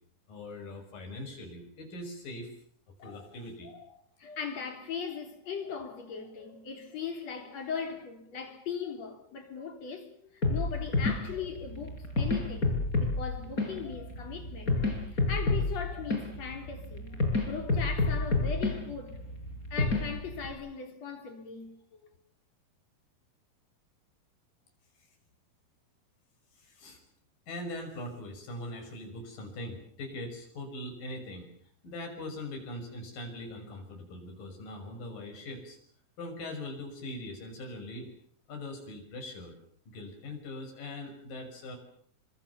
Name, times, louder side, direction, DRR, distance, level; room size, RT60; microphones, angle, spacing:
voice 1, 0.3-2.5 3.0-3.7 26.6-27.0 27.5-31.5 31.8-35.8 36.2-38.1 38.5-39.5 39.9-41.8, left 1 dB, 65° left, 7.4 m, -41 dB
voice 2, 3.0-3.3 3.6-3.8 4.2-14.8 15.1-19.2 19.7-22.0, left 6 dB, 45° left, 4.6 m, -39 dB
sound 1, 10.4-20.5, left 3 dB, 20° left, 6.2 m, -30 dB
26.0 x 26.0 x 7.1 m
omnidirectional pair, 4.3 m